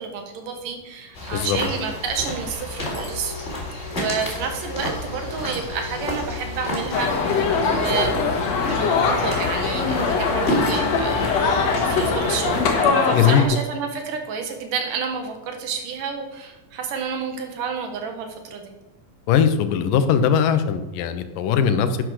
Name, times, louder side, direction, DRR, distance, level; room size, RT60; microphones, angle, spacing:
voice 1, 0.0-3.4 3.9-11.3 11.9-12.6 13.0-18.7, right 5 dB, 75° right, 4 dB, 3.1 m, -30 dB
sound 1, 1.1-12.8, left 2 dB, 20° left, 3.6 m, -30 dB
sound 2, 6.9-13.4, left 4 dB, 55° left, 2.6 m, -22 dB
voice 2, 13.1-13.6 19.3-22.0, left 7 dB, 80° left, 10 dB, 2.5 m, -20 dB
10.5 x 9.4 x 6.4 m, 1.0 s
omnidirectional pair, 3.9 m